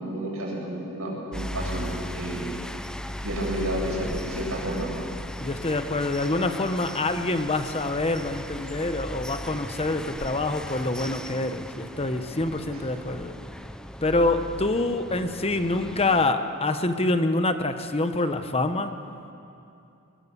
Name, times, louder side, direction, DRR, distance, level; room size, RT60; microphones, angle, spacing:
voice 1, 0.0-2.4 3.2-4.9 12.7-12.8, right 1 dB, 70° right, -3 dB, 7.3 m, -31 dB
sound 1, 1.3-16.3, left 1 dB, 5° left, 0.6 m, -37 dB
voice 2, 5.4-13.4 14.0-18.9, left 2 dB, 30° left, 8 dB, 1.1 m, -26 dB
22.5 x 22.0 x 7.0 m, 2.7 s
head